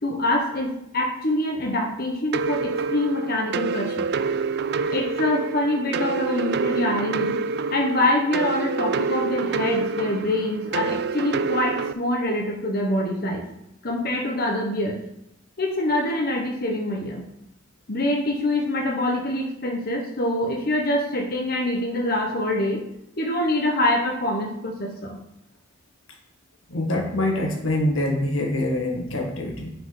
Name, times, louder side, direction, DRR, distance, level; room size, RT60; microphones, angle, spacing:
voice 1, 0.0-4.0 4.9-7.4 7.7-13.4 13.8-15.0 15.6-17.2 17.9-22.8 23.2-25.2, left 1 dB, 50° left, 0 dB, 1.1 m, -25 dB
sound 1, 2.3-11.9, right 4 dB, 55° right, 0.3 m, -27 dB
voice 2, 26.7-29.7, left 1 dB, 80° left, 1 dB, 1.7 m, -25 dB
9.6 x 5.0 x 3.9 m, 0.83 s
head